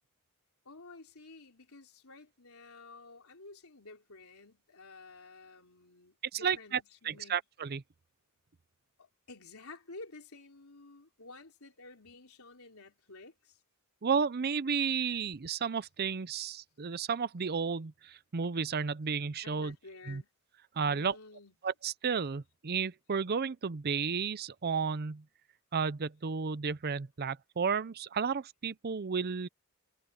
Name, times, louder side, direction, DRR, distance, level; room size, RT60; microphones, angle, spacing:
voice 1, 0.7-7.4 9.0-13.6 16.4-16.5 19.4-20.3 20.9-21.6, left 3 dB, 75° left, 3.9 m, -52 dB
voice 2, 6.3-7.8 14.0-19.7 20.1-20.2 20.8-21.1 21.6-25.2 25.7-29.5, right 6 dB, 45° right, 0.6 m, -32 dB
head